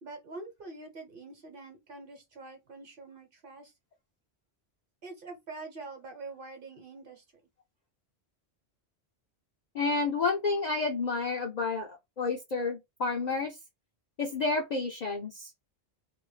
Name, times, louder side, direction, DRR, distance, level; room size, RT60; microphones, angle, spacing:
voice 1, 0.0-3.7 5.0-7.2, right 3 dB, 55° right, 1.1 m, -45 dB
voice 2, 9.7-13.6 14.2-15.5, left 3 dB, 55° left, 0.5 m, -30 dB
2.5 x 2.1 x 3.1 m
omnidirectional pair, 1.1 m